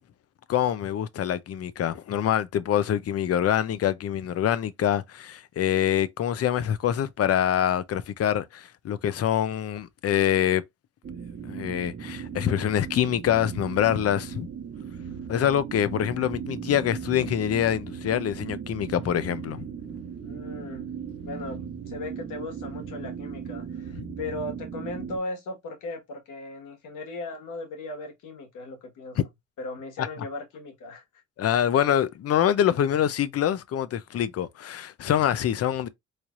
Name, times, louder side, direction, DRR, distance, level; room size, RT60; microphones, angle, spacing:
voice 1, 0.5-10.6 11.4-14.5 15.3-19.7 23.9-24.1 30.0-30.1 31.4-35.9, left 10 dB, 50° left, 0.6 m, -25 dB
sound 1, 11.0-25.2, right 7 dB, 40° right, 0.7 m, -37 dB
voice 2, 20.2-20.9 21.2-29.2 29.6-31.0, left 2 dB, 85° left, 1.5 m, -37 dB
4.2 x 3.2 x 2.5 m
cardioid pair, 90°, 30 cm